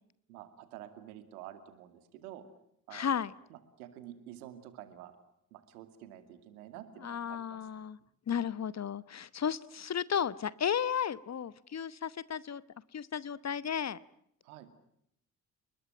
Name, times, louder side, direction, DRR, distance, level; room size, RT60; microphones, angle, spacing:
voice 1, 0.3-2.4 2.9-3.2 3.5-5.1 5.5-7.6 14.4-14.7, right 12 dB, 75° right, 10 dB, 2.5 m, -49 dB
voice 2, 2.9-3.3 7.0-8.0 8.3-12.6 12.9-14.0, left 8 dB, 35° left, 19 dB, 1.1 m, -34 dB
30.0 x 20.5 x 9.1 m, 0.74 s
figure-of-eight pair, 45°, 45 cm